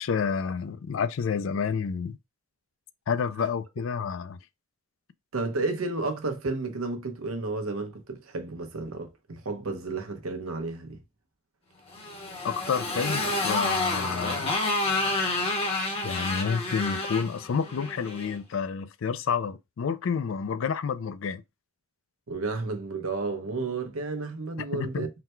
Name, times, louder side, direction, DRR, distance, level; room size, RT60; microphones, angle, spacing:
voice 1, 0.0-2.2 3.1-4.4 12.4-14.5 16.0-21.4 24.7-25.1, left 6 dB, 65° left, 0.4 m, -29 dB
voice 2, 5.3-11.0 16.2-16.3 22.3-25.1, right 3 dB, 90° right, 0.8 m, -32 dB
Motorcycle, 11.9-18.3, left 2 dB, 30° left, 0.9 m, -29 dB
4.0 x 2.2 x 4.3 m
head